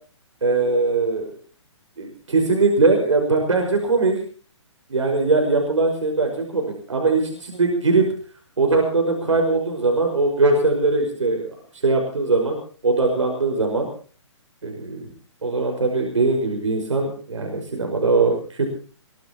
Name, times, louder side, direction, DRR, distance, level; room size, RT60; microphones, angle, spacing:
voice 1, 0.4-1.2 2.0-4.2 4.9-8.1 8.6-12.6 12.8-13.9 14.6-15.1 15.4-18.7, right 3 dB, 80° right, 2 dB, 5.6 m, -21 dB
23.0 x 19.0 x 3.0 m, 0.41 s
hypercardioid pair, 135°, 16 cm